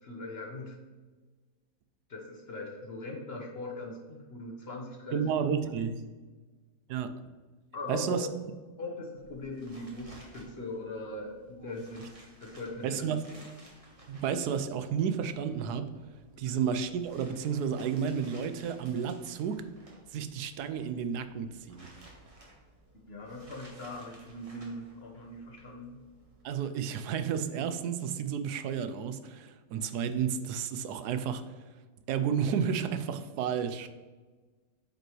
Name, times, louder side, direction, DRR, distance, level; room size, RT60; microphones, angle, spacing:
voice 1, 0.0-0.8 2.1-5.3 5.8-5.9 7.7-8.2 8.8-12.0 12.4-13.2 16.4-16.6 23.1-26.0, left 2 dB, 45° left, 0 dB, 1.2 m, -40 dB
voice 2, 5.1-5.9 6.9-7.1 7.9-8.3 12.8-13.2 14.1-15.9 16.4-19.6 20.1-21.9 26.4-31.6 32.1-33.9, right 7 dB, 85° right, 10 dB, 1.1 m, -31 dB
sound 1, 9.1-26.4, right 1 dB, 25° right, 1.2 m, -57 dB
8.6 x 5.3 x 3.1 m, 1.3 s
omnidirectional pair, 1.7 m